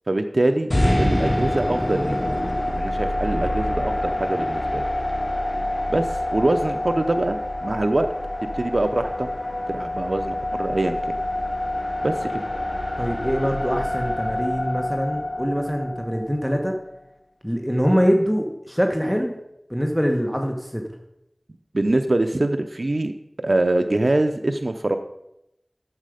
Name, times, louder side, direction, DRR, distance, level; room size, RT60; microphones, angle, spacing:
voice 1, 0.1-2.2 2.7-4.8 5.9-8.1 8.5-9.3 9.7-11.0 12.0-12.3 21.7-23.1 23.4-25.0, right 2 dB, 75° right, 6 dB, 0.6 m, -23 dB
sound 1, 0.7-16.8, left 1 dB, 50° left, 3.8 m, -26 dB
voice 2, 13.0-16.8 17.4-19.3 19.7-20.8, equal, ahead, 3 dB, 1.3 m, -23 dB
11.5 x 7.4 x 5.0 m, 0.84 s
wide cardioid pair, 45°, 0 cm